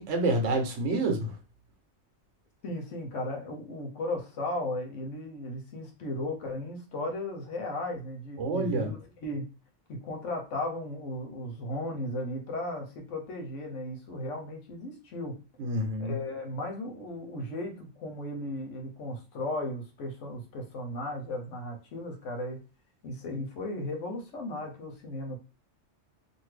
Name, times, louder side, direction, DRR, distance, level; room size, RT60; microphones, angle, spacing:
voice 1, 0.0-1.3 8.4-8.9 15.6-16.2, right 2 dB, 85° right, 4 dB, 1.1 m, -28 dB
voice 2, 2.6-9.5 9.9-15.4 16.0-22.6 23.0-25.4, left 1 dB, 90° left, 2 dB, 1.2 m, -36 dB
2.6 x 2.6 x 3.2 m, 0.32 s
omnidirectional pair, 1.2 m